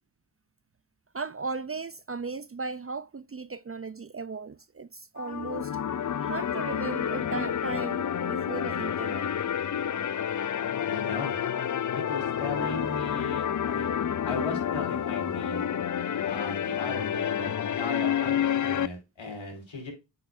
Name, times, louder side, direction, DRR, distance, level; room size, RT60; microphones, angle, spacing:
voice 1, 1.1-5.7 6.2-9.3, right 4 dB, 30° right, 0.5 m, -36 dB
sound 1, 5.2-18.9, left 9 dB, 40° left, 0.5 m, -29 dB
voice 2, 10.9-11.4 11.9-13.9 14.2-15.6 16.2-19.9, left 3 dB, 75° left, 5.0 m, -37 dB
8.9 x 6.2 x 2.6 m
cardioid pair, 55°, 47 cm